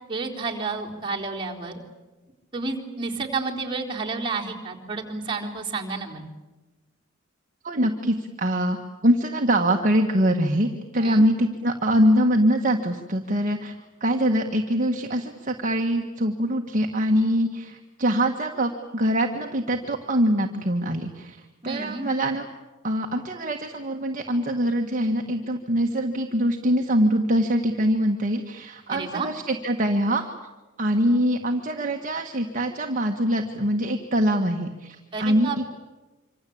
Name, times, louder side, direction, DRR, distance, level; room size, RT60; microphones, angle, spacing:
voice 1, 0.1-1.8 2.5-6.3 11.0-11.3 21.6-22.1 28.9-29.3 35.1-35.7, right 4 dB, 25° right, -1 dB, 4.0 m, -30 dB
voice 2, 7.6-13.7 14.0-22.4 22.8-30.3 30.8-35.7, equal, 40° right, 3 dB, 1.7 m, -23 dB
26.5 x 26.0 x 8.7 m, 1.2 s
head